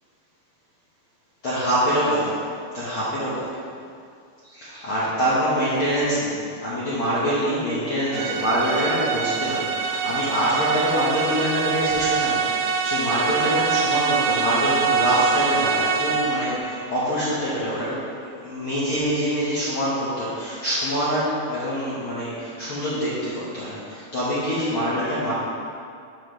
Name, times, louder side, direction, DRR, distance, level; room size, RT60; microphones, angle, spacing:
voice 1, 1.4-2.4 2.7-3.5 4.5-6.1 6.6-18.0 18.4-25.3, equal, 60° left, -10 dB, 1.3 m, -25 dB
sound 1, 8.1-16.6, right 6 dB, 85° right, 2.4 m, -24 dB
8.3 x 7.2 x 3.1 m, 2.4 s
omnidirectional pair, 4.1 m